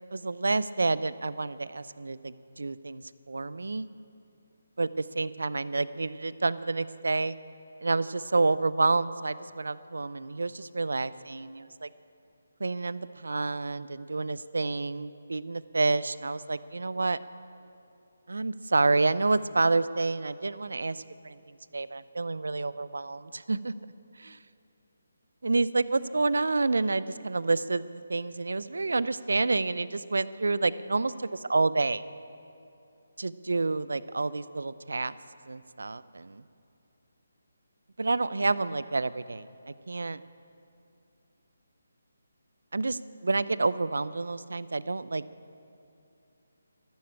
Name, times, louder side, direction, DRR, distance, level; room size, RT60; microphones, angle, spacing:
voice 1, 0.2-3.0 3.3-3.9 4.8-7.3 7.8-11.9 12.6-17.2 18.3-23.7 24.2-24.4 25.4-32.0 33.2-35.2 35.5-36.4 38.0-40.2 42.7-45.2, right 3 dB, 75° right, 16 dB, 0.6 m, -29 dB
13.5 x 12.0 x 8.9 m, 2.6 s
figure-of-eight pair, 150°, 0 cm